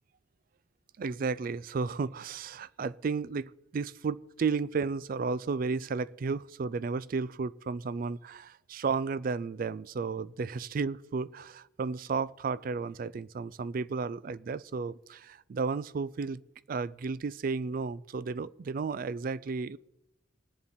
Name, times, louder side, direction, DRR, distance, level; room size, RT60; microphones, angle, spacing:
voice 1, 1.0-3.4 3.7-16.4 16.7-19.8, right 4 dB, 45° right, 0.3 m, -33 dB
20.0 x 7.1 x 4.2 m
head